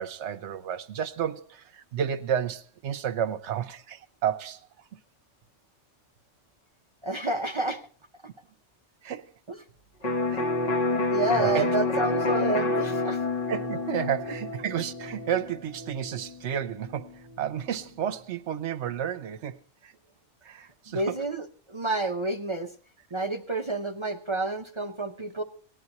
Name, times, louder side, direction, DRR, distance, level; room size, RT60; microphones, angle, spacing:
voice 1, 0.0-4.9 9.0-9.3 10.3-10.5 11.0-11.1 11.4-11.7 13.5-20.0 20.4-21.2, right 9 dB, 75° right, 1.0 m, -32 dB
voice 2, 7.0-7.8 9.5-9.6 10.9-13.2 14.0-14.1 20.9-22.7 23.1-25.4, right 2 dB, 35° right, 0.6 m, -29 dB
Electric guitar, 10.0-17.7, left 2 dB, 35° left, 1.0 m, -29 dB
18.5 x 11.0 x 2.9 m
omnidirectional pair, 1.2 m